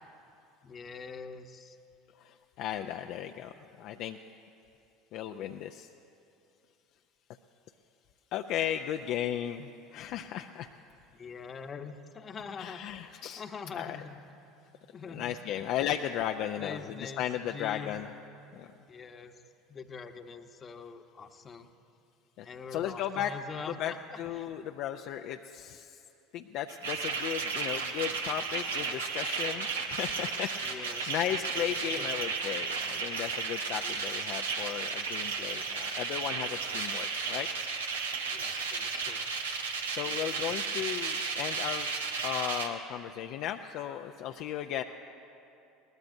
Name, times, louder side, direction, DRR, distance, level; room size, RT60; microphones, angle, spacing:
voice 1, 0.6-1.8 11.1-14.2 14.9-15.3 16.5-17.9 18.9-19.3 19.7-21.7 22.4-24.5 30.6-31.1 31.6-31.7 32.0-32.3 33.8-34.0 38.3-39.3 40.0-40.4, left 5 dB, 35° left, 7 dB, 0.9 m, -44 dB
voice 2, 2.2-4.2 5.1-5.9 8.3-10.7 12.6-13.4 13.8-14.0 15.1-18.1 18.5-18.7 22.4-22.5 22.7-23.3 23.8-26.0 26.3-37.5 39.9-41.9 42.2-44.8, left 10 dB, 55° left, 5 dB, 0.4 m, -35 dB
sound 1, 26.7-42.7, right 5 dB, 85° right, 0.9 m, -34 dB
21.5 x 19.0 x 2.7 m, 2.8 s
hypercardioid pair, 70°, 0 cm